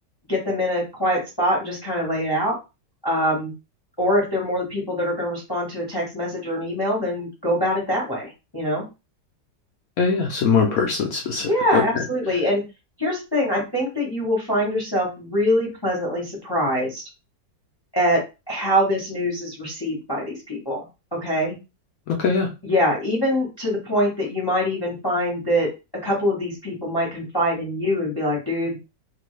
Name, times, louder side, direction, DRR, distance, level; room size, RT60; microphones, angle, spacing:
voice 1, 0.3-2.5 3.0-3.5 4.0-8.8 11.5-12.6 13.0-17.0 17.9-18.2 18.5-21.5 22.6-25.7 26.0-28.8, equal, 20° left, -3 dB, 0.7 m, -24 dB
voice 2, 10.0-11.8 22.1-22.5, left 5 dB, 70° left, 1 dB, 0.8 m, -21 dB
3.0 x 2.4 x 3.1 m, 0.27 s
omnidirectional pair, 1.9 m